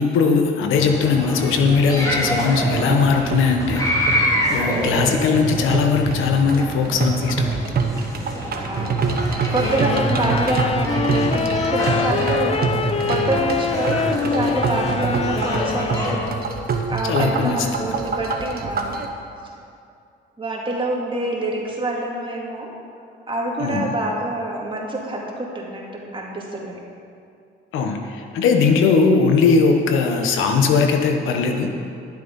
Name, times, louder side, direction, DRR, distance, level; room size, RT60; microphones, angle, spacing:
voice 1, 0.0-3.8 4.5-7.6 17.1-17.9 23.6-23.9 27.7-31.7, left 5 dB, 85° left, 4 dB, 1.1 m, -19 dB
sound 1, 0.7-16.2, equal, 15° left, 2.6 m, -27 dB
sound 2, 1.6-19.1, right 5 dB, 50° right, 1.1 m, -26 dB
voice 2, 2.0-2.5 4.7-5.1 8.6-9.0 9.5-12.6 13.1-16.3 16.9-19.0 20.4-22.7 23.3-26.8, right 2 dB, 25° right, -2 dB, 2.3 m, -26 dB
Wind instrument woodwind instrument, 9.6-16.8, left 5 dB, 30° left, 0.5 m, -25 dB
11.5 x 7.7 x 5.4 m, 2.5 s
cardioid pair, 90°, 20 cm